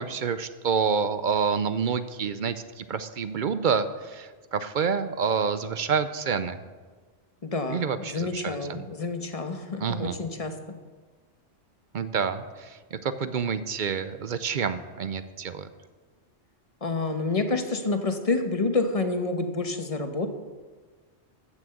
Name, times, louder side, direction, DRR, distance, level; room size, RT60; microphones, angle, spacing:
voice 1, 0.0-6.6 7.7-8.8 9.8-10.1 11.9-15.7, right 6 dB, 55° right, 13 dB, 0.6 m, -28 dB
voice 2, 7.4-10.5 16.8-20.3, left 3 dB, 30° left, 7 dB, 1.1 m, -28 dB
14.0 x 6.2 x 7.8 m, 1.4 s
omnidirectional pair, 1.2 m